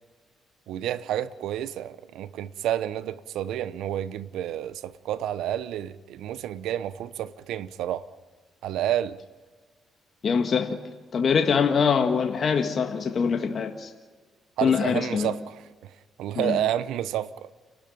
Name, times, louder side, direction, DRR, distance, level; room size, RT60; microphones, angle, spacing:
voice 1, 0.7-8.1 8.6-9.2 14.6-15.9 16.2-17.5, right 11 dB, 85° right, 0.8 m, -30 dB
voice 2, 10.2-10.8 11.1-13.9 14.6-15.3 16.3-16.6, left 6 dB, 50° left, 1.6 m, -23 dB
29.5 x 12.5 x 9.0 m
cardioid pair, 90°, 0 cm